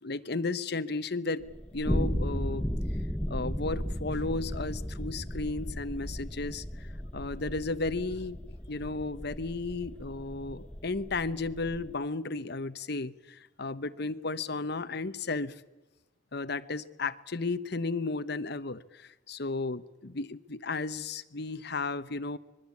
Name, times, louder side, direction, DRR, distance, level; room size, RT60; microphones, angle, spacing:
voice 1, 0.0-1.5 1.7-2.7 3.3-6.6 7.1-8.4 8.7-15.6 16.3-22.4, left 3 dB, 60° left, 11 dB, 1.1 m, -34 dB
sound 1, 1.4-11.9, equal, 5° left, 0.8 m, -35 dB
25.0 x 21.0 x 8.5 m, 1.1 s
head